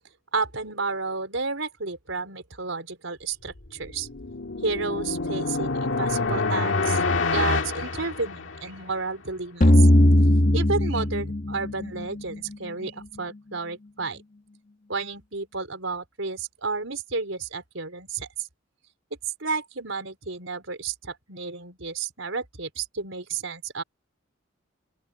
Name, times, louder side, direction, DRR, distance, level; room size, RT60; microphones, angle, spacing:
voice 1, 0.3-4.1 4.6-7.0 7.3-9.9 10.5-14.2 14.9-18.5 19.4-23.8, right 4 dB, 85° right, 4.6 m, -31 dB
sound 1, 3.6-8.8, left 3 dB, 75° left, 1.8 m, -27 dB
sound 2, 9.6-12.5, left 1 dB, 40° left, 1.3 m, -18 dB
open air
head